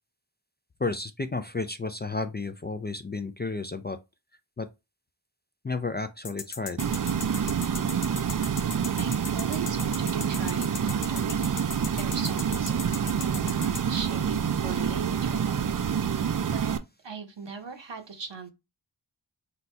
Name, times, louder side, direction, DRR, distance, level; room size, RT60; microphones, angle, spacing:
voice 1, 0.8-4.0 4.6-4.7 5.6-6.8, left 3 dB, 25° left, 0.3 m, -32 dB
sound 1, 6.2-13.8, left 6 dB, 65° left, 0.8 m, -37 dB
sound 2, 6.8-16.8, right 7 dB, 45° right, 0.4 m, -27 dB
voice 2, 9.0-16.8 17.0-18.5, right 5 dB, 75° right, 1.0 m, -40 dB
4.0 x 2.3 x 4.3 m
wide cardioid pair, 60°, 44 cm